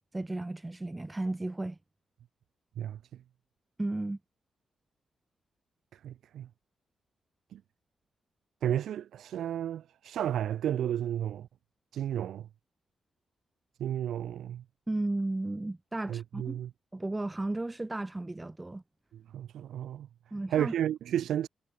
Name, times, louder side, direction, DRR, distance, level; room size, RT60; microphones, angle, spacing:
voice 1, 0.1-1.8 3.8-4.2 14.9-16.6 16.9-18.8 20.3-20.7, right 2 dB, 20° right, 6.1 m, -34 dB
voice 2, 2.8-3.2 5.9-6.5 7.5-7.6 8.6-11.5 11.9-12.5 13.8-14.6 16.1-16.7 19.1-20.1 20.5-21.5, right 10 dB, 85° right, 2.3 m, -32 dB
cardioid pair, 65°, 0 cm